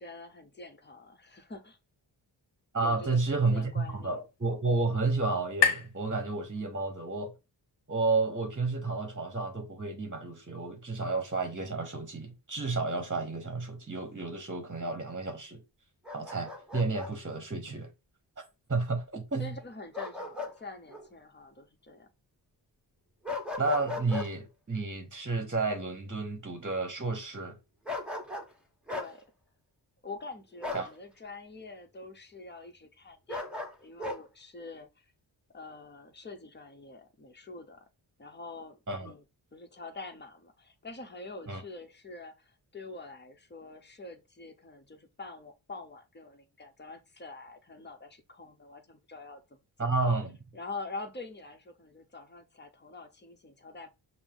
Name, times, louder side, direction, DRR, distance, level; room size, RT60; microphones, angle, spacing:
voice 1, 0.0-1.8 2.8-4.2 19.4-22.1 28.9-29.3 30.0-35.1 35.5-37.9 38.2-53.9, left 3 dB, 20° left, 0.9 m, -46 dB
voice 2, 2.7-7.3 7.9-15.6 16.1-17.9 18.7-19.5 23.6-27.6 30.7-30.9 38.9-39.1 41.5-41.6 49.8-50.4, right 3 dB, 25° right, 1.1 m, -31 dB
sound 1, 3.3-7.0, left 8 dB, 60° left, 0.8 m, -34 dB
Bark, 16.1-17.1 19.9-20.6 20.9-21.1 23.2-24.3 27.9-28.5 28.9-29.1 30.6-30.9 33.3-34.2, left 3 dB, ahead, 1.0 m, -37 dB
5.6 x 2.0 x 3.9 m
cardioid pair, 50°, 47 cm